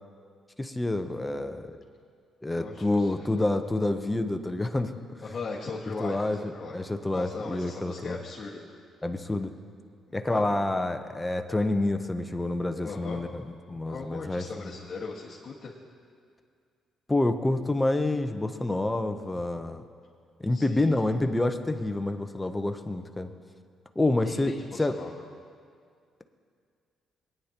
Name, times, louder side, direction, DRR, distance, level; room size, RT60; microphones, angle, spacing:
voice 1, 0.6-1.8 2.4-5.2 6.0-8.2 9.0-9.5 10.1-14.7 17.1-19.8 20.4-23.3 24.0-25.0, left 2 dB, 10° left, 7 dB, 0.7 m, -28 dB
voice 2, 2.5-3.3 5.2-6.8 7.1-8.6 10.3-10.8 12.8-13.2 13.8-15.7 20.5-21.0 24.2-25.2, left 4 dB, 40° left, -8 dB, 1.6 m, -39 dB
20.5 x 9.5 x 2.9 m, 2.2 s
cardioid pair, 90°, 0 cm